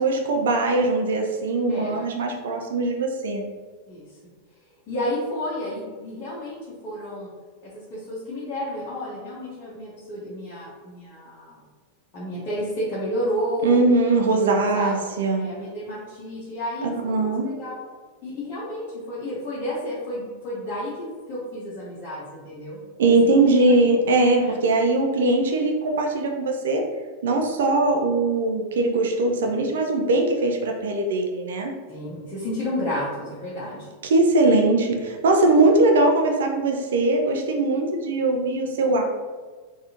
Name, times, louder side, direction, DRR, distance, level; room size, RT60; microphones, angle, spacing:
voice 1, 0.0-3.4 13.6-15.5 16.8-17.5 23.0-26.8 27.2-31.7 34.0-39.0, right 2 dB, 60° right, 2 dB, 0.4 m, -21 dB
voice 2, 1.7-2.1 3.9-4.1 4.9-7.3 7.6-11.6 12.1-13.8 14.2-15.1 15.4-17.8 18.2-23.9 24.4-24.6 31.9-33.9, equal, 35° left, -8 dB, 1.0 m, -31 dB
4.0 x 2.6 x 2.8 m, 1.4 s
figure-of-eight pair, 90°, 0 cm